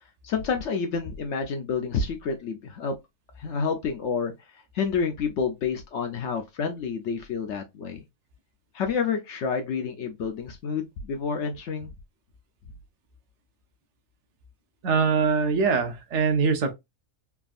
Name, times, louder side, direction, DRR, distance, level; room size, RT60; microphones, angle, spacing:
voice 1, 0.2-3.0 3.4-4.3 4.7-8.0 8.7-11.9, left 5 dB, 65° left, 0.8 m, -29 dB
voice 2, 14.8-16.7, right 5 dB, 60° right, 0.9 m, -23 dB
3.4 x 2.3 x 2.3 m
omnidirectional pair, 1.5 m